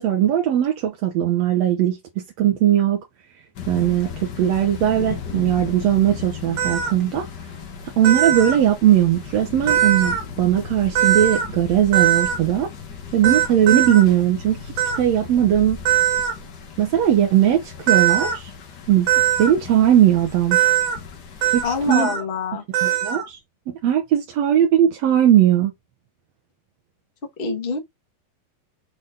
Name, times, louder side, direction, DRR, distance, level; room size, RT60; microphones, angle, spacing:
voice 1, 0.0-2.0 2.4-3.0 3.7-7.3 8.0-12.7 13.1-15.8 16.8-18.5 18.9-19.1 19.4-20.6 21.5-22.1 22.8-23.4 23.7-25.7, right 11 dB, 65° right, 1.8 m, -19 dB
sound 1, 3.5-21.9, left 6 dB, 85° left, 0.9 m, -36 dB
sound 2, 6.6-6.9 8.0-8.6 9.7-10.2 11.0-11.5 11.9-12.4 13.2-14.0 14.8-15.0 15.9-16.3 17.9-18.4 19.1-19.5 20.5-21.0 21.4-21.6 21.9-22.2 22.7-23.3, right 11 dB, 90° right, 3.3 m, -20 dB
voice 2, 21.6-22.6 27.4-27.8, left 5 dB, 30° left, 1.1 m, -25 dB
7.7 x 4.1 x 3.8 m
omnidirectional pair, 4.0 m